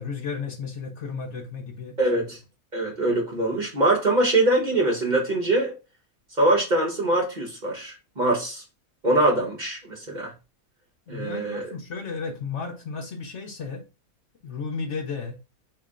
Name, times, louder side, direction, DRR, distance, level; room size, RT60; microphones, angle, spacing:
voice 1, 0.0-2.3 11.1-13.9 14.4-15.4, left 5 dB, 60° left, 1.0 m, -34 dB
voice 2, 2.0-2.4 2.7-5.7 6.4-8.6 9.0-10.3 11.1-11.7, right 2 dB, 35° right, 1.1 m, -23 dB
4.1 x 2.9 x 3.6 m
omnidirectional pair, 1.5 m